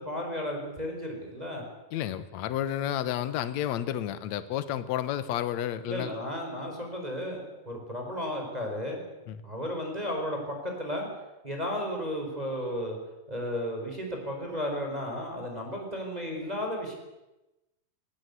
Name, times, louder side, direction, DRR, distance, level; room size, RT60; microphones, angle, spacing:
voice 1, 0.0-1.6 5.9-9.0 9.4-11.1 11.4-13.0 13.3-17.0, equal, 10° right, 1 dB, 4.5 m, -34 dB
voice 2, 1.9-6.1 9.3-9.4, left 11 dB, 65° left, 13 dB, 2.1 m, -31 dB
19.0 x 19.0 x 8.2 m, 0.99 s
omnidirectional pair, 4.0 m